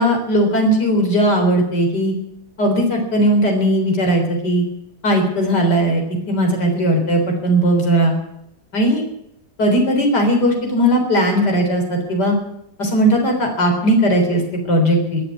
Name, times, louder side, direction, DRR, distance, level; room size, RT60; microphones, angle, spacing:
voice 1, 0.0-2.1 2.6-4.6 5.0-6.0 6.3-8.2 8.7-9.0 9.6-12.4 12.8-15.2, right 1 dB, 90° left, 2 dB, 4.5 m, -17 dB
20.5 x 7.5 x 8.3 m, 0.77 s
omnidirectional pair, 1.7 m